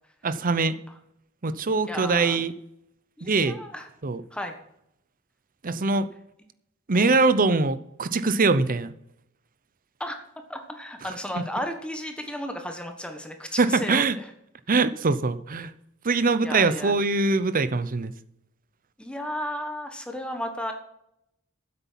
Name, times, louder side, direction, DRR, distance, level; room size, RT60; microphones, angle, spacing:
voice 1, 0.2-0.7 1.4-2.5 3.2-3.6 4.0-4.2 5.6-6.1 6.9-8.9 11.3-11.4 13.6-14.2 14.7-15.7 16.0-18.1, right 3 dB, 40° right, 13 dB, 0.7 m, -23 dB
voice 2, 1.9-2.4 3.2-3.9 4.3-4.5 10.0-10.2 10.5-14.3 16.4-17.0 19.0-20.7, equal, 5° left, 5 dB, 1.3 m, -34 dB
9.7 x 8.2 x 7.3 m, 0.79 s
head